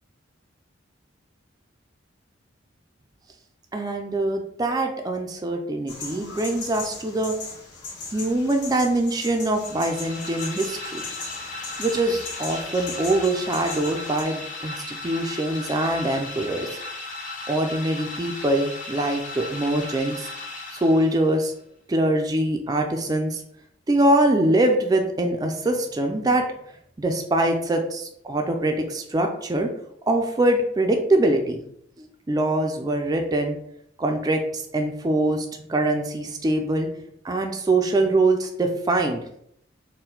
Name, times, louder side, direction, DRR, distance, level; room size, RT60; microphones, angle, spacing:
voice 1, 3.7-7.4 8.1-11.0 11.8-16.8 17.5-20.3 20.7-21.5 21.9-23.4 23.9-26.5 27.0-29.7 30.1-31.6 32.0-33.6 34.0-36.9 37.2-39.2, right 1 dB, 20° right, 3 dB, 0.3 m, -23 dB
sound 1, 5.9-14.2, left 4 dB, 60° left, 1.0 m, -38 dB
sound 2, 9.6-21.4, left 3 dB, 40° left, 0.7 m, -36 dB
4.3 x 2.1 x 3.8 m, 0.72 s
head